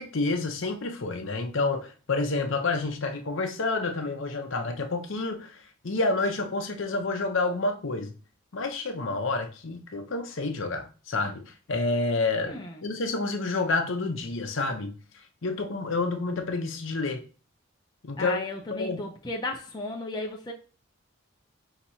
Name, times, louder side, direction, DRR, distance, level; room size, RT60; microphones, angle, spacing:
voice 1, 0.0-5.6 5.8-8.1 8.5-12.6 12.8-14.9 15.4-17.2 18.0-18.4 18.7-19.0, left 3 dB, 65° left, 5 dB, 0.7 m, -29 dB
voice 2, 12.4-12.8 18.2-20.5, left 2 dB, 20° left, 0 dB, 0.5 m, -34 dB
5.8 x 2.8 x 2.8 m, 0.36 s
head